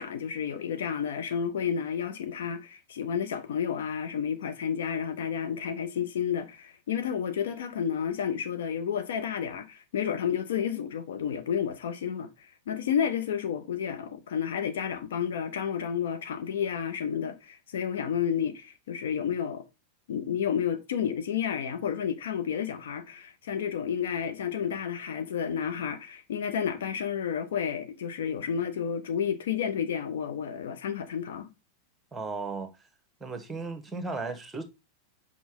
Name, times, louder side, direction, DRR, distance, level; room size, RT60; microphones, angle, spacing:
voice 1, 0.0-19.6 20.1-31.5, left 8 dB, 60° left, 0.7 m, -31 dB
voice 2, 32.1-32.7 33.2-34.6, right 3 dB, 10° right, 1.2 m, -35 dB
6.0 x 4.8 x 3.5 m
figure-of-eight pair, 90°, 0 cm